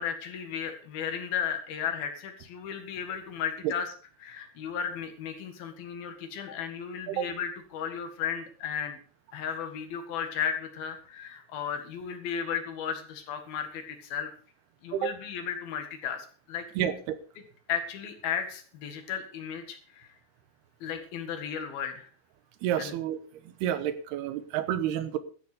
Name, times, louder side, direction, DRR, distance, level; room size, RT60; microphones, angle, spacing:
voice 1, 0.0-3.9 4.2-9.0 9.3-14.3 14.8-16.9 17.7-20.2 20.8-22.1 22.8-22.9, left 8 dB, 70° left, 6 dB, 3.7 m, -34 dB
voice 2, 16.8-17.2 22.6-23.2 23.4-25.2, right 10 dB, 85° right, 12 dB, 3.1 m, -29 dB
13.0 x 10.5 x 5.1 m, 0.41 s
omnidirectional pair, 4.5 m